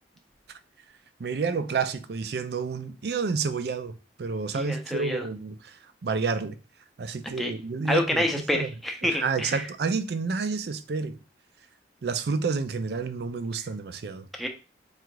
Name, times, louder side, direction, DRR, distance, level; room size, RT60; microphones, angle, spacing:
voice 1, 1.2-6.6 7.0-8.7 9.0-11.2 12.0-14.3, right 4 dB, 60° right, 0.4 m, -30 dB
voice 2, 4.5-5.3 7.4-7.5 7.9-9.6 14.4-14.5, equal, ahead, 0.6 m, -28 dB
3.6 x 2.4 x 4.6 m
head